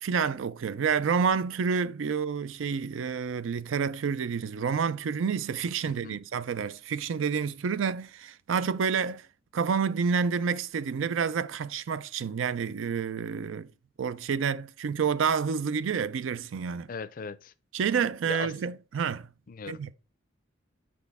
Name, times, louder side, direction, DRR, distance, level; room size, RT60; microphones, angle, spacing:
voice 1, 0.0-9.2 9.5-13.7 14.0-16.9 17.7-19.3 19.7-19.9, right 6 dB, 75° right, 0.4 m, -29 dB
voice 2, 5.9-6.2 16.9-17.5 18.3-18.6 19.5-19.9, left 5 dB, 45° left, 0.4 m, -39 dB
6.1 x 4.9 x 3.5 m
head